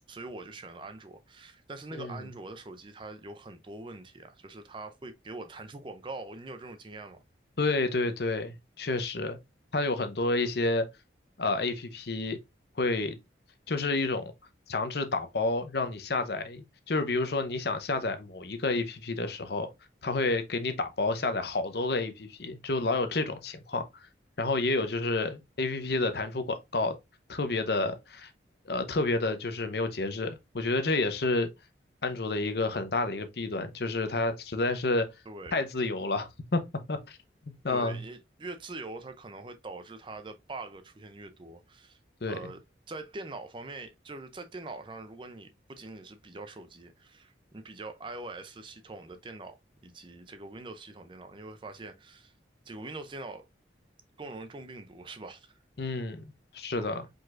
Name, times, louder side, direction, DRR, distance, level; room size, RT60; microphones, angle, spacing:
voice 1, 0.1-7.2 35.3-35.6 37.7-42.0 42.3-42.6 42.9-49.6 49.8-52.3 52.7-53.5 54.2-55.6 56.7-57.0, right 2 dB, 25° right, 0.5 m, -43 dB
voice 2, 1.9-2.2 7.6-9.4 9.7-10.8 11.4-12.4 12.8-13.2 13.7-14.3 14.7-19.7 20.0-23.9 24.4-27.0 27.3-28.3 28.7-31.5 32.0-35.1 35.5-36.6 36.9-37.2 37.4-38.0 42.2-42.4 55.8-57.1, left 3 dB, 60° left, 0.7 m, -30 dB
5.0 x 4.0 x 2.4 m
head